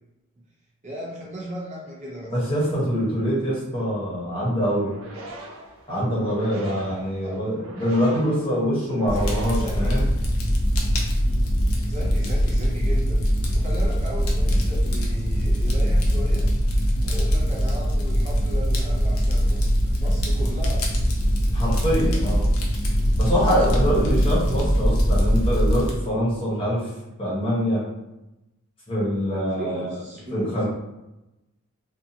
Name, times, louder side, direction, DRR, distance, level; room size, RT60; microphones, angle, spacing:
voice 1, 0.8-2.3 7.2-7.4 9.1-9.2 9.6-9.9 11.8-16.5 17.0-19.7 20.0-21.0 29.5-30.6, equal, 35° right, -4 dB, 0.5 m, -36 dB
voice 2, 2.3-5.0 5.9-10.1 21.5-22.5 23.2-26.9 27.2-27.8 28.9-30.0 30.3-30.6, equal, 25° left, -7 dB, 1.0 m, -24 dB
sound 1, 4.7-10.3, right 1 dB, 80° right, 0.6 m, -41 dB
Fire, 9.1-25.9, equal, 90° left, 0.6 m, -22 dB
2.7 x 2.4 x 2.6 m, 0.96 s
head